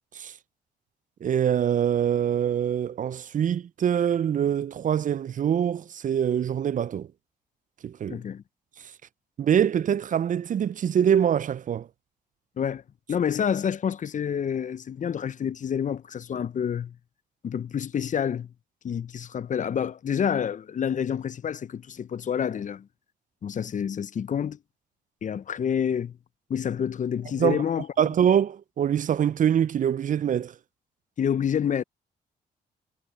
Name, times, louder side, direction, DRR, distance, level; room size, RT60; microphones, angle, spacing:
voice 1, 1.2-7.1 7.8-8.2 9.4-11.9 27.4-27.6 28.0-30.6, right 9 dB, 45° right, 0.4 m, -24 dB
voice 2, 8.1-8.4 12.6-12.8 13.1-17.0 17.4-18.5 18.8-22.9 23.4-24.6 25.2-26.2 26.5-27.9 31.2-31.8, left 8 dB, 45° left, 0.5 m, -28 dB
supercardioid pair, 60°, 18 cm